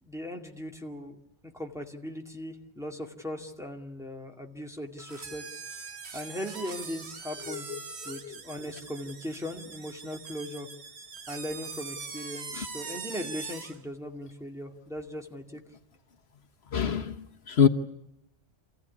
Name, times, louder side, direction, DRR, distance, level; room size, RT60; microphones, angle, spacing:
voice 1, 0.0-1.2 1.4-5.6 6.1-7.7 8.0-10.7 11.3-15.6, equal, 5° right, 2.2 m, -38 dB
sound 1, 5.0-13.8, right 5 dB, 80° right, 1.6 m, -42 dB
voice 2, 16.7-17.7, left 7 dB, 75° left, 1.3 m, -25 dB
27.0 x 15.5 x 9.8 m
omnidirectional pair, 1.1 m